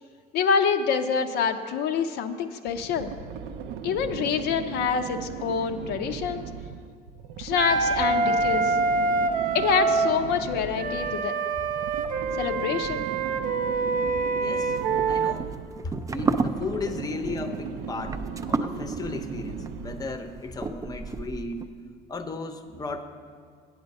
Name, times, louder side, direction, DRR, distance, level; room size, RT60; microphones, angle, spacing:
voice 1, 0.3-3.1 3.8-6.4 7.4-8.8 9.5-11.3 12.4-13.1, left 6 dB, 85° left, 7 dB, 0.5 m, -26 dB
sound 1, 2.7-20.3, right 7 dB, 90° right, 0.4 m, -38 dB
Wind instrument woodwind instrument, 7.6-10.2 10.8-15.3, right 3 dB, 55° right, 0.7 m, -25 dB
voice 2, 14.3-14.8 15.1-21.7 22.1-23.0, left 3 dB, 20° left, 7 dB, 0.6 m, -35 dB
sound 2, 14.6-21.7, right 4 dB, 20° right, 0.3 m, -32 dB
8.2 x 7.9 x 5.3 m, 2.1 s
cardioid pair, 110°, 17 cm